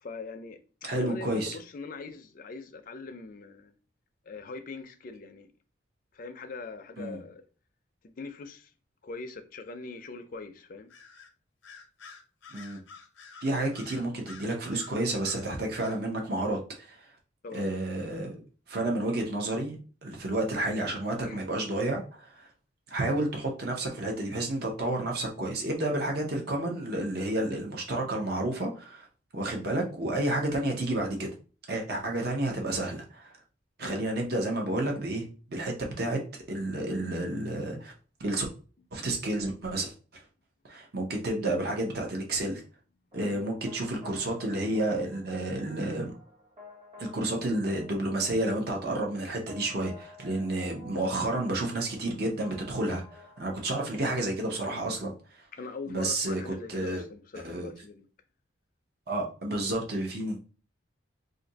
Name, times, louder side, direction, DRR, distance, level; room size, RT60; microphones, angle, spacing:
voice 1, 0.0-3.8 4.3-5.5 6.1-7.4 8.0-8.7 9.0-10.9 17.4-17.8 21.2-21.4 33.8-34.0 43.2-43.4 55.5-58.1, left 4 dB, 45° left, 0.4 m, -42 dB
voice 2, 0.8-1.6 7.0-7.2 12.5-12.8 13.4-17.1 17.5-18.4 18.7-22.5 22.9-29.1 29.3-31.3 31.7-33.3 33.8-36.2 36.5-37.9 38.2-38.5 38.9-40.2 40.6-42.6 43.1-46.1 47.0-55.5 55.9-57.0 57.3-57.7 59.1-60.4, right 1 dB, 55° right, 0.7 m, -31 dB
Bird vocalization bird call bird song, 10.9-11.3 11.6-15.5 15.8-16.0, left 5 dB, 90° left, 0.6 m, -49 dB
sound 1, 43.1-54.7, left 2 dB, 30° right, 1.1 m, -52 dB
2.6 x 2.5 x 3.9 m
head